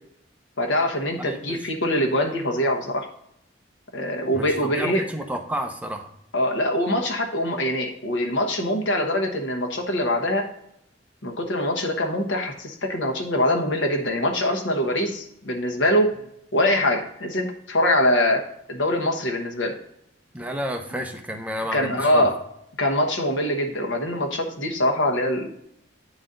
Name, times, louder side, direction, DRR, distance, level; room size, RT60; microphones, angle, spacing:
voice 1, 0.6-3.1 3.9-5.0 6.3-10.5 11.2-16.1 16.5-18.4 18.7-19.7 21.7-22.4 22.8-25.5, left 1 dB, 85° left, 3 dB, 1.2 m, -23 dB
voice 2, 1.2-1.7 4.3-6.1 20.3-22.3, equal, 10° right, 3 dB, 0.7 m, -31 dB
9.0 x 4.1 x 3.8 m, 0.75 s
head